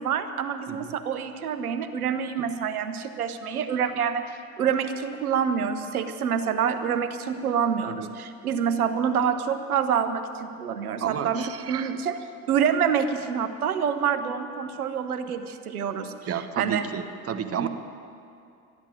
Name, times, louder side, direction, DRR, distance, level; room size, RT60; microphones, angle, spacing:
voice 1, 0.0-4.2 4.6-12.2 12.5-16.1 16.6-16.8 17.6-17.7, right 7 dB, 80° right, 9 dB, 1.0 m, -27 dB
voice 2, 11.0-11.9 16.3-17.7, right 8 dB, 35° right, 9 dB, 1.1 m, -32 dB
12.5 x 11.0 x 8.9 m, 2.5 s
figure-of-eight pair, 65°, 43 cm